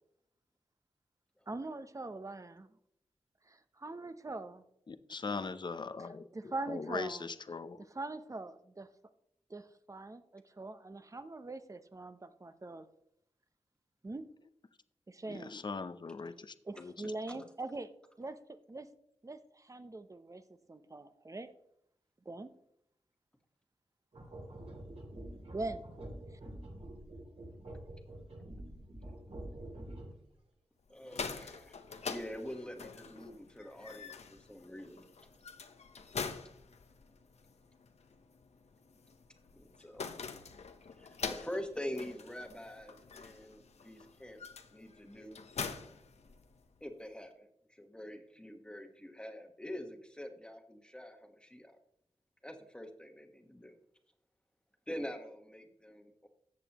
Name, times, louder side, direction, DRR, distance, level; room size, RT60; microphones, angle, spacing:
voice 1, 1.5-2.7 3.5-4.6 5.3-5.5 6.0-6.1 6.3-7.3 7.9-8.9 9.5-12.9 14.0-14.3 15.1-15.5 16.7-17.9 18.2-18.4 18.7-18.9 19.2-20.4 20.7-21.5 22.3-22.5 25.5-25.9 26.3-26.4, right 2 dB, 30° right, 10 dB, 0.8 m, -42 dB
voice 2, 4.9-7.9 15.3-17.5, left 4 dB, 40° left, 11 dB, 0.6 m, -41 dB
sound 1, 24.1-30.3, right 1 dB, 60° right, 2.8 m, -47 dB
sound 2, 30.9-46.8, left 5 dB, 75° left, 0.9 m, -45 dB
voice 3, 30.9-35.1 39.5-40.1 41.0-44.4 44.7-45.5 46.8-51.8 52.4-53.7 54.9-56.3, equal, 10° left, 5 dB, 1.3 m, -45 dB
14.0 x 8.2 x 3.0 m, 0.74 s
wide cardioid pair, 80°, 11 cm